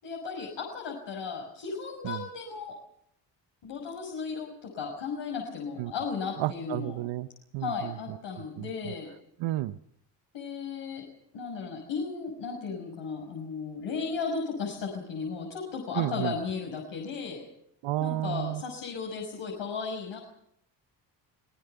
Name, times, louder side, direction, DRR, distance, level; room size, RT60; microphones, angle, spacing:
voice 1, 0.0-2.7 3.6-7.0 7.6-9.1 10.3-11.0 11.3-17.4 18.0-20.2, left 5 dB, 70° left, 0 dB, 6.1 m, -35 dB
voice 2, 6.4-7.3 7.5-7.9 8.6-8.9 9.4-9.8 15.9-16.3 17.8-18.6, right 16 dB, 85° right, 13 dB, 0.9 m, -31 dB
26.0 x 18.0 x 6.8 m, 0.73 s
cardioid pair, 85°, 45 cm